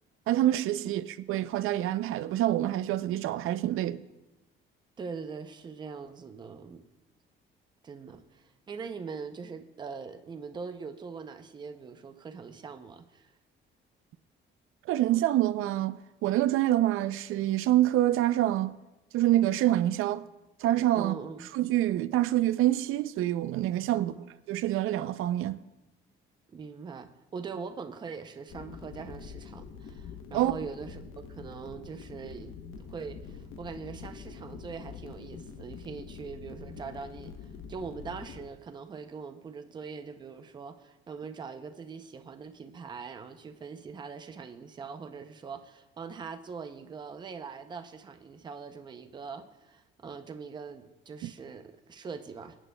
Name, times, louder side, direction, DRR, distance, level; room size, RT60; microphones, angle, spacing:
voice 1, 0.3-4.0 14.9-18.8 19.1-20.3 20.6-21.1 21.5-24.1 24.5-25.6 30.3-30.5 51.2-51.3, right 14 dB, 90° right, 0.5 m, -26 dB
voice 2, 5.0-6.8 7.8-13.3 20.9-21.5 23.9-24.3 26.5-52.6, right 5 dB, 20° right, 0.5 m, -42 dB
sound 1, 28.5-38.5, left 6 dB, 85° left, 0.9 m, -45 dB
22.5 x 9.0 x 2.2 m
cardioid pair, 180°, 21 cm